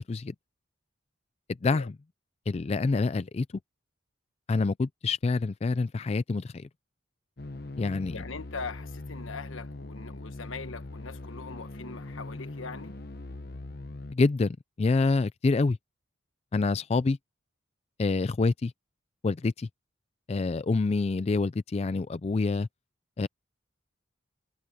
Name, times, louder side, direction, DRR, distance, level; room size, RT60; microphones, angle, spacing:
voice 1, 1.6-1.9 2.5-3.5 4.5-6.7 7.8-8.2 14.1-15.8 16.5-17.2 18.0-18.7 19.2-19.7 20.3-22.7 23.2-23.3, left 3 dB, 30° left, 0.3 m, -27 dB
sound 1, 7.4-14.2, left 2 dB, 50° left, 0.9 m, -41 dB
voice 2, 8.1-12.9, left 4 dB, 85° left, 1.4 m, -41 dB
head